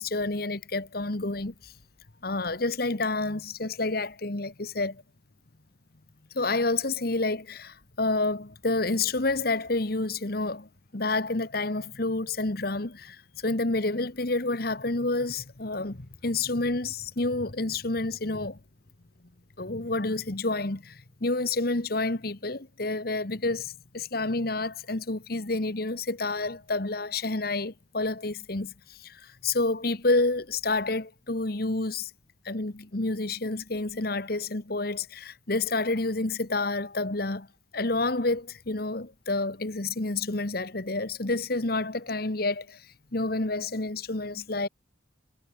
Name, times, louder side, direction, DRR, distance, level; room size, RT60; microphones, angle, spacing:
voice 1, 0.0-1.7 2.2-5.0 6.3-18.6 19.6-32.1 32.4-37.5 37.7-42.9 43.1-44.7, left 2 dB, 50° left, 1.4 m, -29 dB
head